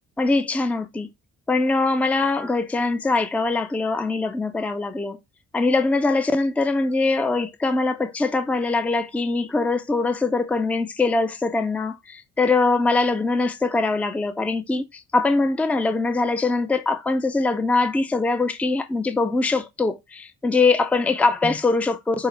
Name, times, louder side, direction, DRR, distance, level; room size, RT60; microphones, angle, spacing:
voice 1, 0.2-1.1 1.5-5.2 5.5-22.3, left 3 dB, 5° left, 0.4 m, -22 dB
5.5 x 2.1 x 4.2 m
cardioid pair, 90°, 30 cm